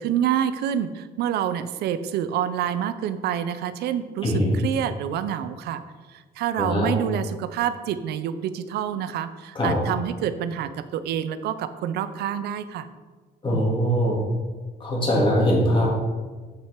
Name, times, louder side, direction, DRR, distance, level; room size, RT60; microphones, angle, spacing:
voice 1, 0.0-5.8 6.1-12.9, right 9 dB, 75° right, 12 dB, 0.6 m, -27 dB
voice 2, 6.6-6.9 9.5-9.7 13.4-14.2 14.8-15.9, equal, 30° left, -4 dB, 3.0 m, -21 dB
8.4 x 6.3 x 4.5 m, 1.4 s
cardioid pair, 110°, 17 cm